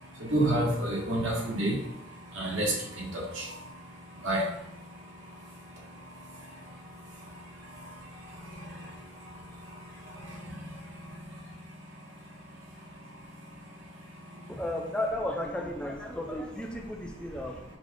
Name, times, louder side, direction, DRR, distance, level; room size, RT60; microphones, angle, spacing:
voice 1, 0.0-14.5, right 1 dB, 90° right, -4 dB, 1.3 m, -35 dB
voice 2, 14.5-17.6, left 1 dB, 5° left, 1 dB, 0.5 m, -34 dB
5.2 x 2.4 x 3.4 m, 0.84 s
head